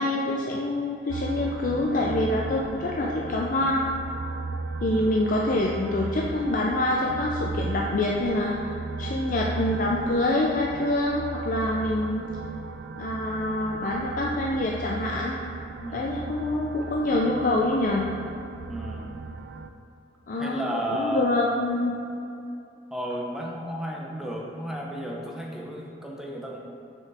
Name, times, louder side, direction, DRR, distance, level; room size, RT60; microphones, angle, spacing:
voice 1, 0.0-3.8 4.8-12.3 13.0-15.4 15.9-18.1 20.3-21.9, left 1 dB, 45° left, -2 dB, 0.4 m, -26 dB
sound 1, 1.1-19.7, right 4 dB, 65° right, 0.3 m, -36 dB
voice 2, 15.8-16.2 18.7-19.1 20.3-21.3 22.9-26.6, equal, 5° right, -2 dB, 0.6 m, -33 dB
6.8 x 4.6 x 3.4 m, 2.6 s
head